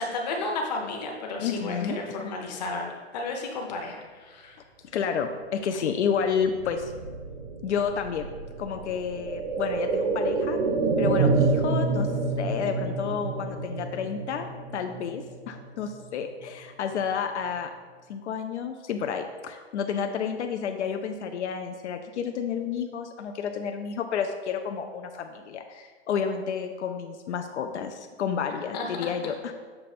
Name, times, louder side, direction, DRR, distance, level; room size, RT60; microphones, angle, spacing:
voice 1, 0.0-4.6 28.7-29.1, left 3 dB, 40° left, 1 dB, 0.9 m, -33 dB
voice 2, 1.4-2.3 4.9-6.9 7.6-8.3 8.6-10.6 11.0-12.1 12.4-17.7 18.1-29.5, left 7 dB, 80° left, 6 dB, 0.6 m, -30 dB
sound 1, 6.3-16.1 16.4-16.5, right 3 dB, 55° right, 0.8 m, -28 dB
6.9 x 3.2 x 4.2 m, 1.5 s
hypercardioid pair, 160°, 34 cm